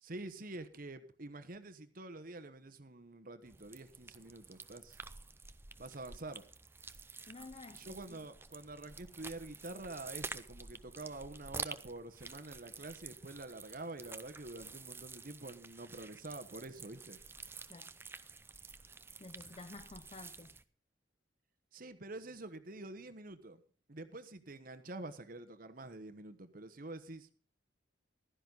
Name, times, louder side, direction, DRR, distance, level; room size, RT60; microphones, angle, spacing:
voice 1, 0.0-5.0 5.8-6.4 7.7-17.2 21.7-23.6 23.9-27.3, right 2 dB, 45° right, 1.2 m, -47 dB
sound 1, 3.4-20.6, right 4 dB, 10° right, 0.5 m, -49 dB
voice 2, 7.3-8.2 17.7-17.9 19.2-20.6, left 3 dB, 30° left, 0.6 m, -51 dB
15.5 x 12.5 x 4.0 m
head